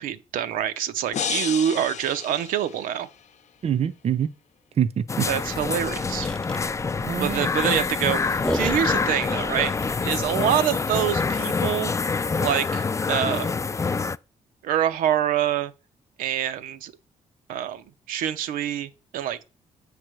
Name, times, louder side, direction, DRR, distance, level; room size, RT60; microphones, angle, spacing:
voice 1, 0.0-3.1 5.3-6.3 7.2-9.7 10.0-11.9 12.4-13.5 14.6-15.7 16.2-16.9 17.5-19.5, right 10 dB, 90° right, 0.6 m, -26 dB
sound 1, 1.1-3.3, left 7 dB, 60° left, 0.7 m, -32 dB
voice 2, 3.6-4.3 4.8-5.3 7.0-7.5, right 8 dB, 50° right, 0.6 m, -25 dB
sound 2, 5.1-14.2, left 4 dB, 20° left, 0.3 m, -26 dB
sound 3, 5.3-10.3, equal, 5° left, 0.8 m, -35 dB
7.3 x 3.4 x 6.1 m
cardioid pair, 75°, 14 cm